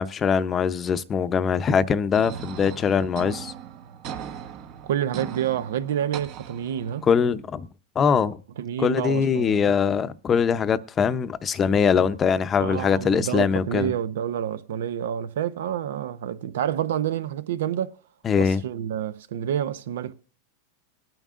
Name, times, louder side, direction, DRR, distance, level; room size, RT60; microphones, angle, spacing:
voice 1, 0.0-3.5 7.0-7.7 7.9-8.4 8.8-13.9 18.2-18.6, left 6 dB, 25° left, 0.7 m, -22 dB
sound 1, 2.1-7.1, right 8 dB, 50° right, 1.1 m, -38 dB
voice 2, 4.8-7.1 8.6-9.6 12.6-18.0 18.4-20.1, right 10 dB, 80° right, 0.7 m, -28 dB
21.0 x 9.1 x 2.5 m
supercardioid pair, 125°, 0 cm